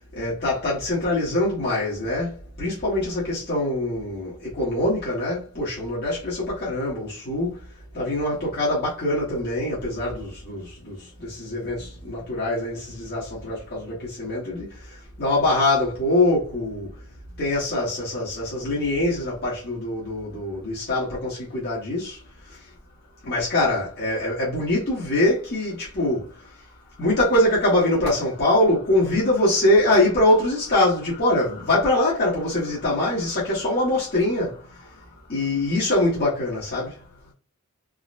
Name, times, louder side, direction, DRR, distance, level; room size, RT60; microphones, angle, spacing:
voice 1, 0.1-7.6 7.9-14.8 15.2-16.9 17.4-22.2 22.5-22.6 23.2-26.3 27.0-34.9 35.3-37.0, left 1 dB, 50° left, 1.1 m, -23 dB
3.7 x 2.1 x 2.5 m
head